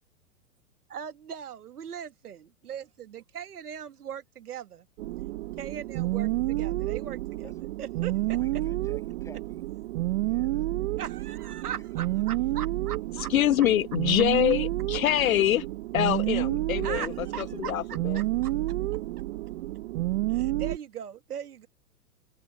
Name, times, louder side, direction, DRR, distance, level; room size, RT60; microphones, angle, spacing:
voice 1, 0.9-4.9 5.6-7.5 7.8-8.4 11.0-13.3 16.8-18.5 20.3-21.7, right 8 dB, 70° right, 1.9 m, -39 dB
sound 1, 5.0-20.8, right 17 dB, 45° right, 1.2 m, -30 dB
voice 2, 8.3-9.7 10.2-10.9, left 3 dB, 5° left, 6.7 m, -51 dB
voice 3, 13.3-15.6 15.9-17.1 17.6-18.2, left 12 dB, 65° left, 0.7 m, -25 dB
open air
hypercardioid pair, 115°, 47 cm